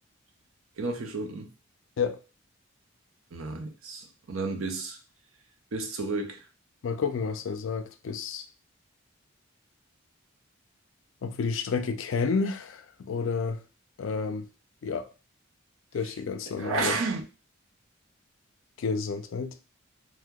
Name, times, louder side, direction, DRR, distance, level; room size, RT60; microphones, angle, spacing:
voice 1, 0.8-1.5 3.3-5.0 5.7-6.5 16.6-17.2, right 3 dB, 75° right, 0.6 m, -32 dB
voice 2, 6.8-8.5 11.2-13.6 14.0-14.5 14.8-15.1 15.9-17.0 18.8-19.5, left 5 dB, 65° left, 0.3 m, -30 dB
2.8 x 2.1 x 3.4 m
head